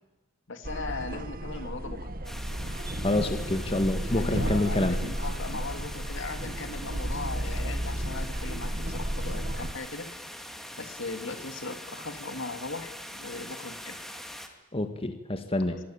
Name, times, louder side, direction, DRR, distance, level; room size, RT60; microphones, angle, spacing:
voice 1, 0.5-2.1 4.0-10.1 10.8-14.0 15.7-15.8, left 3 dB, 65° left, 8 dB, 2.7 m, -38 dB
sound 1, 0.6-9.7, right 1 dB, 45° right, 2.1 m, -33 dB
sound 2, 2.2-14.5, equal, ahead, 2.8 m, -43 dB
voice 2, 3.0-5.0 14.7-15.8, left 1 dB, 30° left, 7 dB, 1.8 m, -27 dB
26.0 x 22.0 x 8.9 m, 1.1 s
head